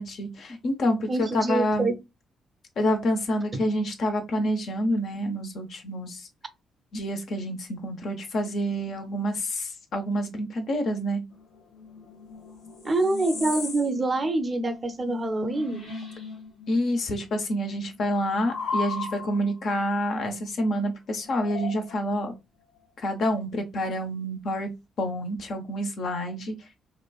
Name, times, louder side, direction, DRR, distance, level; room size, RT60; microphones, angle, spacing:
voice 1, 0.0-1.9 2.8-6.3 6.9-11.2 16.7-22.3 23.0-24.7 25.0-26.5, equal, 60° left, 0.7 m, -28 dB
voice 2, 1.1-1.9 3.5-3.6 12.8-15.9, right 2 dB, 35° right, 0.6 m, -26 dB
sound 1, 11.3-16.9 17.1-19.5 21.2-22.2, left 4 dB, 80° left, 1.2 m, -38 dB
3.0 x 2.2 x 2.3 m
hypercardioid pair, 45°, 0 cm